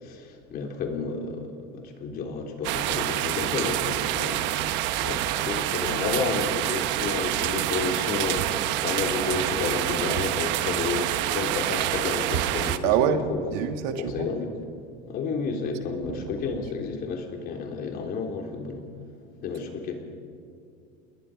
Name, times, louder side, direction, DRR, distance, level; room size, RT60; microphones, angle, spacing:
voice 1, 0.0-4.5 4.9-12.9 13.3-13.4 14.0-14.5 15.1-18.8 19.4-20.0, left 4 dB, 50° left, 2 dB, 3.7 m, -31 dB
sound 1, 2.6-12.8, right 14 dB, 60° right, 1.1 m, -27 dB
voice 2, 12.8-14.3 16.1-16.2, right 8 dB, 75° right, 7 dB, 1.8 m, -26 dB
29.0 x 21.0 x 5.1 m, 2.5 s
cardioid pair, 135°, 21 cm